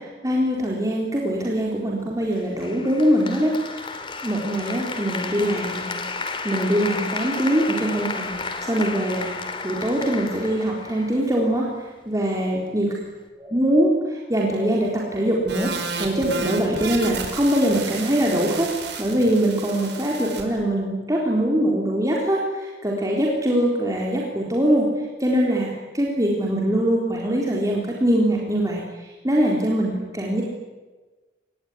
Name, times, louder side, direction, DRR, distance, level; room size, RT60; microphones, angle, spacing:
voice 1, 0.0-3.9 4.2-5.9 6.4-8.3 8.6-9.3 9.6-11.7 12.1-12.9 13.5-15.7 16.0-18.7 19.0-24.9 25.2-28.8 29.2-30.4, equal, 20° right, -2 dB, 3.9 m, -22 dB
Applause, 2.6-11.6, left 4 dB, 30° left, 2.8 m, -32 dB
sound 1, 15.5-20.4, right 4 dB, 75° right, 5.2 m, -32 dB
26.0 x 21.0 x 9.9 m, 1.3 s
head